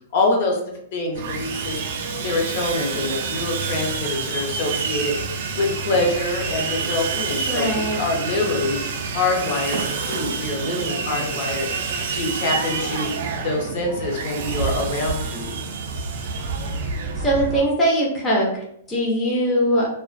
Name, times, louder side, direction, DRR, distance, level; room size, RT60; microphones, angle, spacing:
voice 1, 0.1-0.6 0.9-1.8 2.1-5.1 5.5-8.8 9.1-11.7 12.1-13.1 13.4-15.5, left 2 dB, 55° left, 0 dB, 0.7 m, -25 dB
Sawing, 1.1-17.6, right 5 dB, 55° right, 0.4 m, -28 dB
voice 2, 7.5-8.0 17.2-18.5 18.9-19.9, equal, 15° left, -3 dB, 0.5 m, -20 dB
2.3 x 2.1 x 2.5 m, 0.73 s
hypercardioid pair, 155°, 0 cm